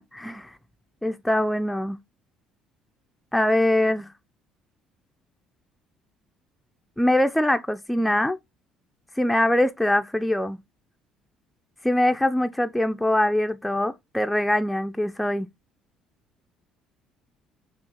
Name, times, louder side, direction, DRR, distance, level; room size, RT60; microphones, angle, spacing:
voice 1, 0.1-0.5 1.0-2.0 3.3-4.1 7.0-8.4 9.2-10.6 11.8-15.5, left 1 dB, 5° left, 0.3 m, -23 dB
5.8 x 2.4 x 2.9 m
hypercardioid pair, 65°, 0 cm